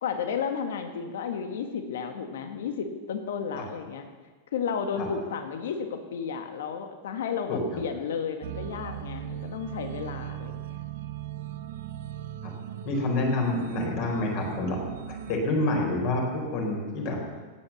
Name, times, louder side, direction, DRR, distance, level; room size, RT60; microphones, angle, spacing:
voice 1, 0.0-4.1 4.5-10.8, left 6 dB, 85° left, 6 dB, 1.8 m, -33 dB
sound 1, 8.4-15.4, right 11 dB, 65° right, 1.0 m, -38 dB
voice 2, 12.8-14.8 15.1-17.2, left 2 dB, 40° left, 1 dB, 4.0 m, -27 dB
17.0 x 9.1 x 7.2 m, 1.3 s
supercardioid pair, 170°, 0 cm